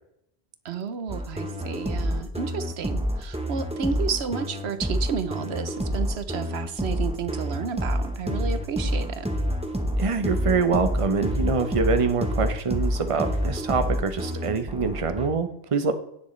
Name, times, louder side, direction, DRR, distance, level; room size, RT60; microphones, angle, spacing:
voice 1, 0.6-9.3, right 6 dB, 85° right, 11 dB, 1.1 m, -31 dB
sound 1, 1.1-15.3, equal, 5° right, 0.9 m, -28 dB
voice 2, 10.0-15.9, right 4 dB, 35° right, 8 dB, 0.9 m, -25 dB
17.0 x 6.3 x 3.2 m, 0.78 s
omnidirectional pair, 1.1 m